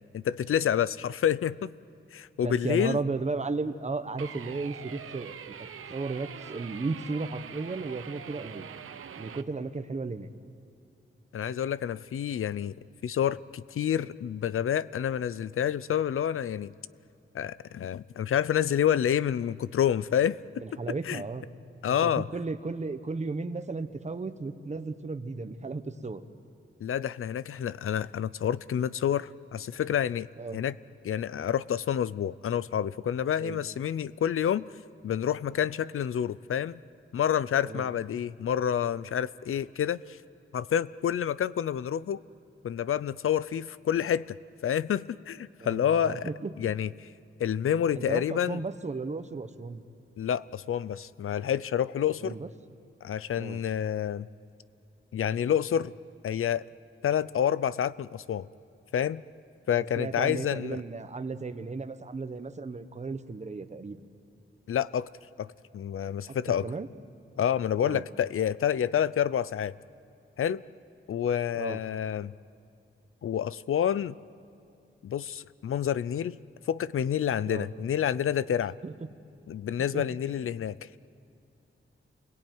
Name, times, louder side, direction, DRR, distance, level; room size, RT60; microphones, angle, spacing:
voice 1, 0.1-1.7 2.1-3.0 11.3-12.7 13.0-16.7 17.3-20.8 21.1-21.2 21.8-22.3 26.8-30.3 30.5-30.8 31.0-34.7 35.0-36.8 37.1-40.2 40.5-42.2 42.6-44.4 44.6-46.3 46.6-47.1 47.4-48.6 50.2-52.4 53.0-54.3 55.1-55.9 56.2-56.6 57.0-58.5 58.9-59.2 59.7-60.8 64.7-65.1 65.4-66.7 67.4-69.7 70.4-70.6 71.1-72.3 73.2-74.1 75.0-76.4 76.7-78.8 79.5-80.9, left 9 dB, 80° left, 18 dB, 0.6 m, -28 dB
voice 2, 2.4-8.7 9.2-10.3 20.6-21.5 21.9-26.2 30.4-30.6 33.4-33.6 37.6-37.9 45.6-46.5 47.9-49.8 52.2-52.5 53.4-53.6 59.7-64.1 66.3-66.9 67.8-68.0 71.5-71.8 77.5-77.7 78.8-79.1 79.9-80.5, right 3 dB, 35° right, 10 dB, 1.1 m, -35 dB
sound 1, 4.2-9.4, right 8 dB, 80° right, 0.9 m, -44 dB
29.0 x 22.0 x 9.4 m, 2.6 s
wide cardioid pair, 140°, 21 cm